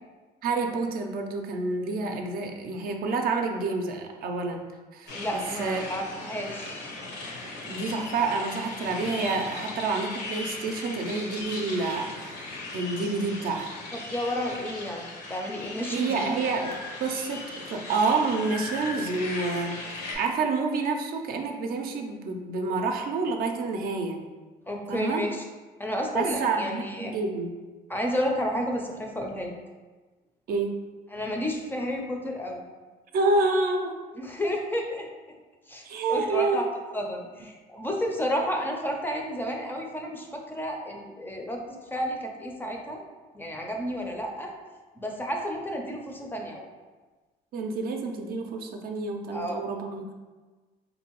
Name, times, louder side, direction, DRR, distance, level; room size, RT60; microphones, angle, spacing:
voice 1, 0.4-4.6 4.9-5.8 7.6-13.7 15.9-16.7 17.0-24.2 24.9-25.3 26.1-27.5 30.5-30.8 33.1-33.9 35.8-36.7 47.5-50.2, right 3 dB, 60° right, 3 dB, 0.5 m, -28 dB
sound 1, 5.1-20.1, left 2 dB, 85° left, 0.9 m, -38 dB
voice 2, 5.1-6.9 13.9-15.0 15.3-16.2 24.7-25.4 25.8-27.1 27.9-29.5 31.1-32.6 34.2-35.1 35.7-36.7 36.9-41.6 41.9-43.0 43.3-44.5 45.0-46.6 49.3-49.7, equal, 10° left, 1 dB, 0.4 m, -31 dB
sound 2, 16.5-17.0 18.3-19.1, left 3 dB, 65° left, 0.5 m, -38 dB
3.7 x 2.7 x 2.9 m, 1.3 s
cardioid pair, 110°, 17 cm